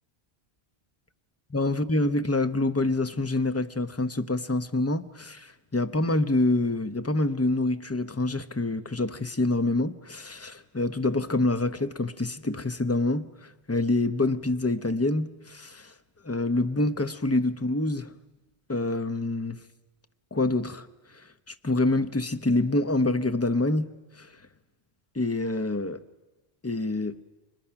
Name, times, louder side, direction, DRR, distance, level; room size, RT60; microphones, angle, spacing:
voice 1, 1.5-15.9 16.2-18.1 18.7-19.6 20.3-20.9 21.6-24.3 25.1-26.0 26.6-27.2, left 2 dB, 15° left, 0.7 m, -26 dB
30.0 x 25.0 x 5.9 m
omnidirectional pair, 1.1 m